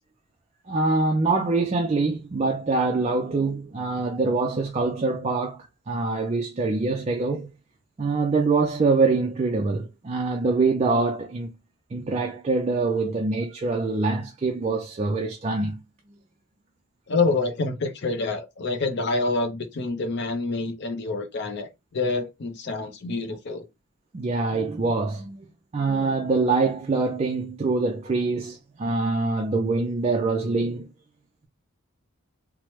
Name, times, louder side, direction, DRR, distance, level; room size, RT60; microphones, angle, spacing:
voice 1, 0.7-7.5 8.0-11.5 11.9-15.8 24.1-25.4 25.7-30.9, right 3 dB, 30° right, 0.3 m, -24 dB
voice 2, 17.1-23.7, left 3 dB, 50° left, 0.5 m, -27 dB
3.0 x 2.0 x 2.9 m
head